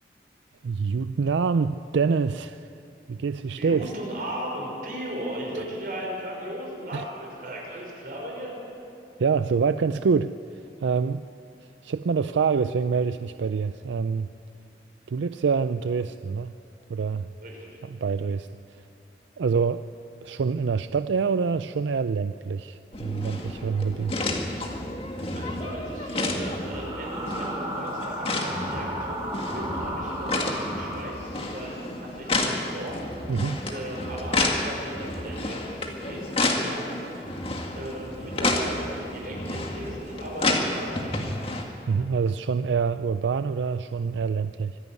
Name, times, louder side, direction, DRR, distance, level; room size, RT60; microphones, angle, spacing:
voice 1, 0.6-2.7 3.1-3.9 5.5-5.6 6.9-7.0 9.2-11.2 11.6-14.3 15.1-16.5 16.9-17.3 17.8-18.8 19.4-19.8 20.2-24.2 33.3-33.6 41.9-44.8, right 5 dB, 85° right, 12 dB, 0.4 m, -26 dB
voice 2, 3.6-8.6 17.4-17.8 25.3-33.4 33.7-41.4, right 1 dB, 50° right, -2 dB, 5.7 m, -37 dB
sound 1, 22.9-41.6, left 2 dB, 30° left, 2.0 m, -30 dB
sound 2, 26.5-31.6, right 1 dB, 20° right, 2.4 m, -35 dB
25.0 x 11.0 x 9.5 m, 2.8 s
head